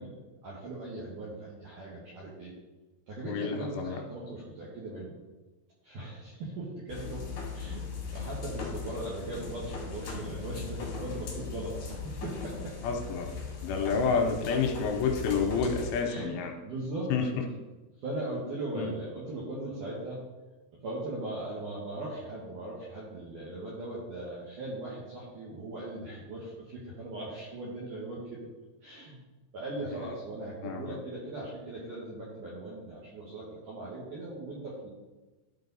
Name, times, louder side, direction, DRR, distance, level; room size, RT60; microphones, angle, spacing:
voice 1, 0.0-2.5 3.1-5.2 5.8-7.3 7.5-7.8 8.1-12.8 16.0-17.1 18.0-20.3 20.7-28.5 28.8-29.2 29.5-34.9, right 2 dB, 70° right, -6 dB, 2.0 m, -39 dB
voice 2, 3.3-4.0 12.8-13.3 13.6-16.5 17.1-17.3 18.7-18.9 30.6-31.0, left 5 dB, 85° left, 3 dB, 3.1 m, -29 dB
sound 1, 6.9-16.0, left 5 dB, 55° left, 2.8 m, -39 dB
12.0 x 4.8 x 4.1 m, 1.1 s
omnidirectional pair, 5.8 m